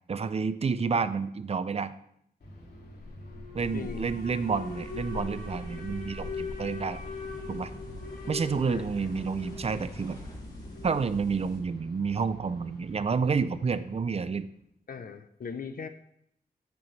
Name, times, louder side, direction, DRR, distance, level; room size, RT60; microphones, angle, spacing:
voice 1, 0.1-1.9 3.5-7.0 7.5-7.7 8.3-10.2 10.8-14.5, right 5 dB, 40° right, 13 dB, 0.4 m, -29 dB
Alarm, 2.4-14.4, left 3 dB, 75° left, 2.3 m, -42 dB
sound 1, 3.6-11.6, left 1 dB, 20° left, 2.3 m, -45 dB
voice 2, 3.7-4.1 8.7-8.9 14.9-15.9, left 5 dB, 60° left, 10 dB, 0.6 m, -38 dB
9.0 x 8.7 x 3.2 m, 0.74 s
wide cardioid pair, 135°, 17 cm